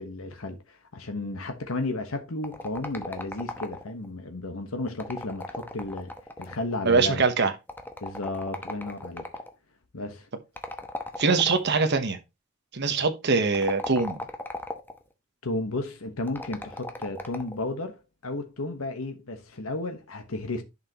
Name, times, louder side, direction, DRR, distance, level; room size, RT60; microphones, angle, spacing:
voice 1, 0.0-6.1 6.4-7.2 8.0-9.3 9.9-10.3 15.4-20.6, left 2 dB, 85° left, 1.2 m, -33 dB
sound 1, 2.4-4.1 4.9-6.7 7.7-9.5 10.6-11.9 13.4-15.0 16.3-17.6, left 2 dB, 10° left, 0.9 m, -37 dB
voice 2, 6.8-7.5 11.2-12.2 12.7-14.2, right 4 dB, 55° right, 1.0 m, -23 dB
10.5 x 5.6 x 2.9 m
head